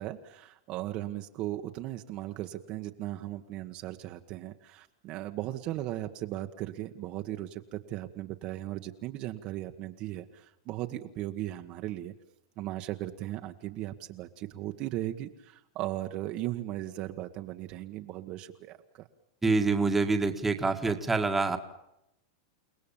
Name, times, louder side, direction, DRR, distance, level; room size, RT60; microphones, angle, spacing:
voice 1, 0.0-12.1 12.6-19.1, right 14 dB, 35° right, 5 dB, 1.4 m, -37 dB
voice 2, 19.4-21.6, right 3 dB, 5° right, 5 dB, 1.8 m, -26 dB
30.0 x 18.5 x 7.2 m, 0.83 s
supercardioid pair, 155°, 3 cm